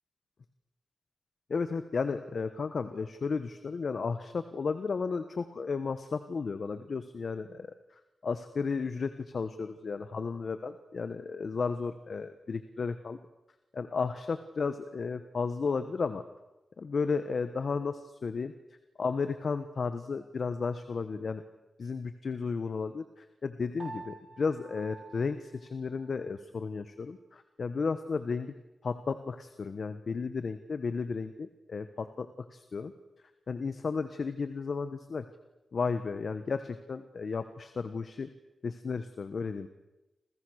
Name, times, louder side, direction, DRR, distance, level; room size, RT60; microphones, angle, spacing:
voice 1, 1.5-7.7 8.2-13.2 13.7-16.2 16.8-18.5 19.0-21.4 21.8-28.5 28.8-32.9 33.5-35.2 35.7-38.3 38.6-39.7, left 5 dB, 60° left, 10 dB, 1.3 m, -33 dB
Piano, 23.8-26.3, right 4 dB, 50° right, 6.3 m, -48 dB
29.5 x 27.0 x 6.6 m, 1.0 s
wide cardioid pair, 95°, 0 cm